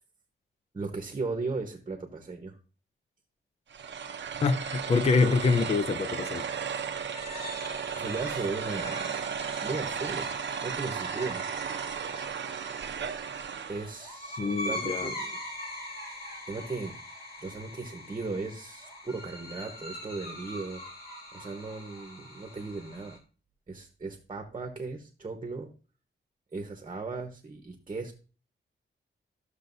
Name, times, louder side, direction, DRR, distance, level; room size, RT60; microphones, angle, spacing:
voice 1, 0.7-2.6 7.9-9.2 9.6-10.3 10.6-11.5 13.7-15.4 16.5-17.0 17.4-20.8 21.3-23.2 23.7-25.7 26.5-28.1, right 3 dB, 25° right, 1.0 m, -37 dB
sound 1, 3.7-14.0, right 7 dB, 65° right, 0.7 m, -35 dB
voice 2, 4.4-6.5 14.4-15.1, left 4 dB, 30° left, 0.4 m, -25 dB
sound 2, 6.0-23.2, left 1 dB, 50° left, 2.2 m, -42 dB
13.5 x 6.5 x 2.6 m
wide cardioid pair, 160°, 21 cm